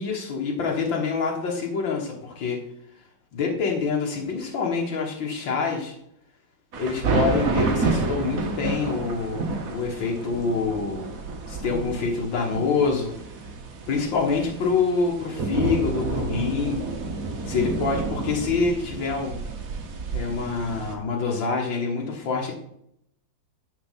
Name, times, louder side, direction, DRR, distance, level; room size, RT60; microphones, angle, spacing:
voice 1, 0.0-2.6 3.3-6.0 6.8-11.2 11.5-13.1 13.9-16.8 17.5-19.4 20.1-22.5, left 4 dB, 85° left, 0 dB, 2.1 m, -26 dB
sound 1, 6.7-21.0, right 3 dB, 50° right, 1.5 m, -30 dB
10.5 x 4.4 x 5.6 m, 0.72 s
omnidirectional pair, 2.0 m